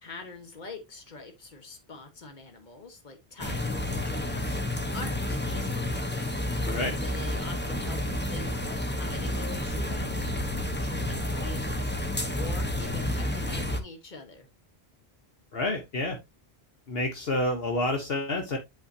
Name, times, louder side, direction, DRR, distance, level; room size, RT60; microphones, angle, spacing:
voice 1, 0.0-14.5, left 3 dB, 45° left, 1.6 m, -44 dB
sound 1, 3.4-13.8, left 1 dB, 10° left, 0.8 m, -30 dB
voice 2, 6.7-7.0 15.5-16.2 16.9-18.6, left 1 dB, 65° left, 1.3 m, -28 dB
8.2 x 5.6 x 2.7 m
omnidirectional pair, 1.1 m